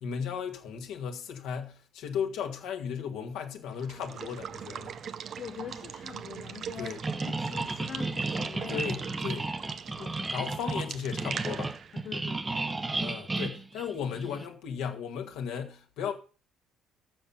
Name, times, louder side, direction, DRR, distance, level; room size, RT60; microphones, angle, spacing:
voice 1, 0.0-5.0 6.8-7.0 8.7-9.5 10.3-11.7 13.0-16.1, left 7 dB, 75° left, 1.9 m, -35 dB
Water / Water tap faucet / Liquid, 3.7-13.3, right 8 dB, 55° right, 0.6 m, -42 dB
voice 2, 5.4-7.0 7.2-8.9 9.3-9.4 10.0-10.5 11.9-12.7, left 8 dB, 55° left, 0.8 m, -43 dB
sound 1, 7.0-14.5, right 3 dB, 25° right, 1.0 m, -33 dB
9.8 x 7.1 x 5.7 m
hypercardioid pair, 60°, 0 cm